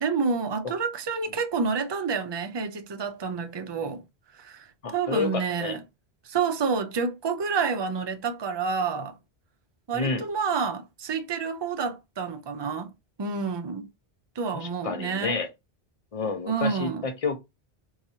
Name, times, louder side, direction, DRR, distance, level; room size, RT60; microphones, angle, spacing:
voice 1, 0.0-4.0 4.4-5.8 6.2-9.2 9.9-12.9 13.2-13.9 14.4-15.4 16.5-17.1, right 5 dB, 35° right, 0.4 m, -29 dB
voice 2, 4.8-5.8 9.9-10.2 14.5-15.5 16.1-17.4, left 4 dB, 35° left, 0.7 m, -30 dB
4.7 x 2.8 x 2.7 m
omnidirectional pair, 1.1 m